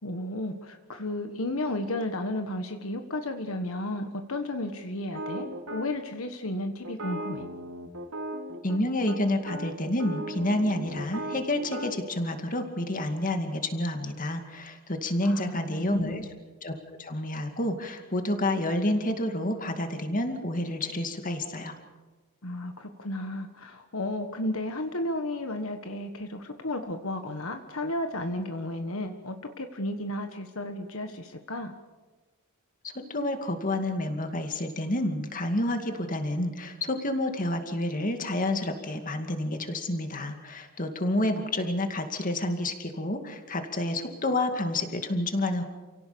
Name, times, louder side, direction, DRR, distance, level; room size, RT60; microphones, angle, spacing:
voice 1, 0.0-7.5 15.2-16.3 22.4-31.7, left 1 dB, 70° left, 6 dB, 1.5 m, -33 dB
sound 1, 5.1-5.9 6.8-8.8 9.1-9.2 9.5-11.9, right 1 dB, 90° right, 3.3 m, -37 dB
voice 2, 8.6-16.3 16.6-21.8 32.8-45.6, left 1 dB, 40° left, 6 dB, 2.3 m, -29 dB
29.0 x 17.5 x 7.0 m, 1.2 s
head